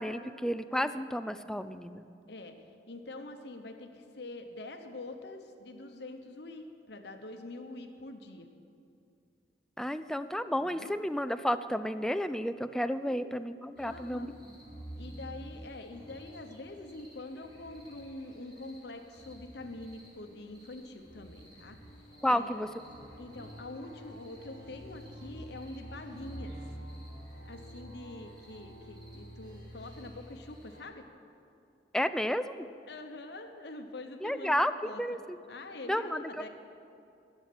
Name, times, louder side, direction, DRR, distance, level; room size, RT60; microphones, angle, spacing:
voice 1, 0.0-2.0 9.8-14.4 22.2-22.7 31.9-32.7 34.2-35.4 35.9-36.2, equal, 5° left, 11 dB, 0.3 m, -31 dB
voice 2, 2.9-8.5 10.6-10.9 13.0-13.3 13.8-14.3 14.9-21.8 22.2-22.6 23.2-26.6 27.4-31.0 32.9-35.0 35.5-36.5, left 2 dB, 65° left, 5 dB, 1.0 m, -45 dB
sound 1, 13.8-30.8, equal, 25° right, 3.3 m, -49 dB
11.5 x 7.2 x 9.4 m, 2.6 s
head